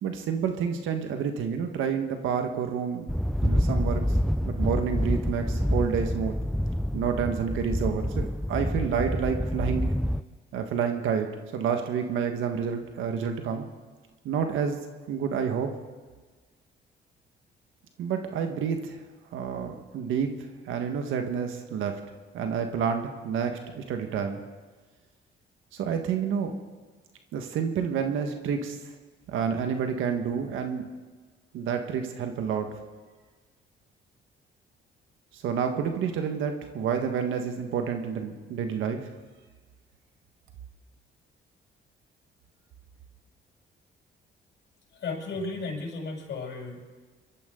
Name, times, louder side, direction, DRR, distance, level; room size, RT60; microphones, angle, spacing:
voice 1, 0.0-3.1 3.4-4.0 4.4-6.4 6.9-9.9 10.5-13.7 14.2-14.8 15.1-15.7 18.0-19.0 19.3-20.3 20.6-22.0 22.3-24.4 25.7-26.5 27.3-28.8 29.3-30.9 31.5-32.7 35.3-39.1, right 7 dB, 85° right, 5 dB, 1.5 m, -29 dB
sound 1, 3.1-10.2, equal, ahead, 0.5 m, -27 dB
voice 2, 44.9-46.8, left 3 dB, 60° left, -1 dB, 6.7 m, -34 dB
25.0 x 13.5 x 3.8 m, 1.4 s
cardioid pair, 90°, 20 cm